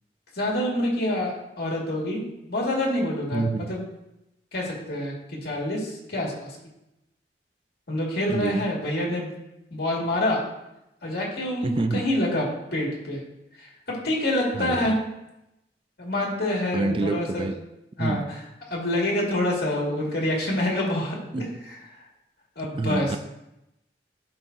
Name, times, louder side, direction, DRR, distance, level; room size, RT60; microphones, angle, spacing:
voice 1, 0.3-2.2 2.5-3.8 4.5-5.1 5.4-6.5 7.9-9.3 9.7-10.4 11.0-12.4 12.7-13.2 13.6-15.0 16.0-17.5 18.0-18.2 18.7-22.0 22.6-23.2, left 1 dB, 60° left, 2.3 m, -27 dB
voice 2, 3.3-3.7 8.3-8.7 11.6-12.1 14.5-14.9 16.7-17.6 18.0-18.3 21.3-21.5 22.8-23.2, right 3 dB, 30° right, 0.3 m, -27 dB
14.0 x 4.8 x 2.8 m
head